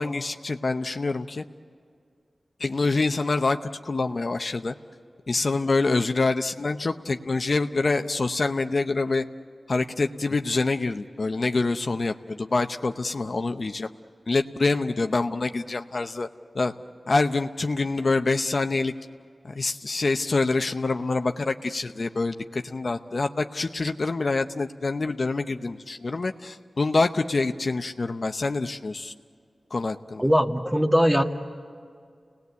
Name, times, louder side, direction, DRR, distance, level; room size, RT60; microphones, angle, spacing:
voice 1, 0.0-1.4 2.6-3.6 3.8-4.7 5.3-9.2 9.7-13.9 14.3-16.3 16.5-16.7 17.1-18.9 19.4-29.1 29.7-30.2, left 3 dB, 55° left, 6 dB, 0.8 m, -26 dB
voice 2, 30.2-31.2, equal, 10° right, 4 dB, 1.7 m, -20 dB
29.5 x 19.5 x 8.3 m, 2.2 s
wide cardioid pair, 65°, 0 cm